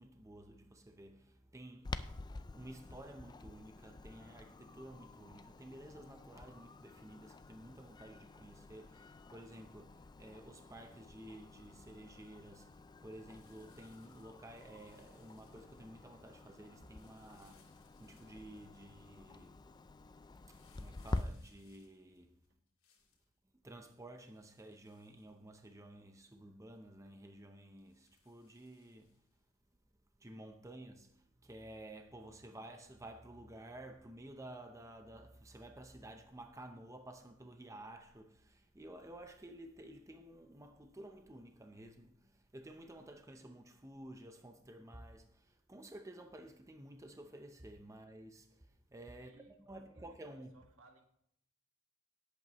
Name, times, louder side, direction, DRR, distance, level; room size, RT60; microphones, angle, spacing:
voice 1, 0.0-2.2 2.5-19.9 20.5-22.4 23.6-29.2 30.2-50.6, right 1 dB, 15° right, 0.7 m, -53 dB
Clock, 1.8-21.2, left 2 dB, 20° left, 0.4 m, -49 dB
sound 1, 13.2-15.9 16.9-19.0 20.4-23.3 24.1-25.8 26.2-26.3 26.7-26.9 27.8-29.4 30.3-30.4, left 6 dB, 65° left, 2.9 m, -72 dB
voice 2, 49.2-51.0, right 3 dB, 75° right, 1.8 m, -65 dB
17.5 x 8.3 x 3.1 m
head